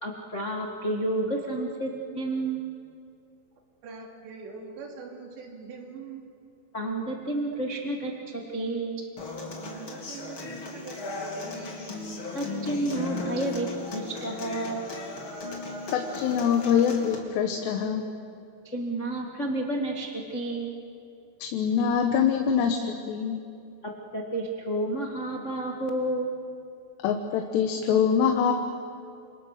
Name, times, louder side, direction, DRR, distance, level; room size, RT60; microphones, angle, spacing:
voice 1, 0.0-2.6 6.7-9.0 12.3-14.9 18.6-20.7 24.1-26.3, right 1 dB, 60° left, 0 dB, 0.7 m, -30 dB
voice 2, 3.8-6.3 9.5-12.0, right 4 dB, 80° right, 1 dB, 5.1 m, -43 dB
Human voice / Acoustic guitar, 9.2-17.2, left 2 dB, 35° left, 3.1 m, -36 dB
voice 3, 15.9-18.0 21.4-23.4 27.0-28.5, left 7 dB, 80° left, 4 dB, 3.3 m, -24 dB
29.5 x 26.0 x 6.6 m, 2.5 s
omnidirectional pair, 4.9 m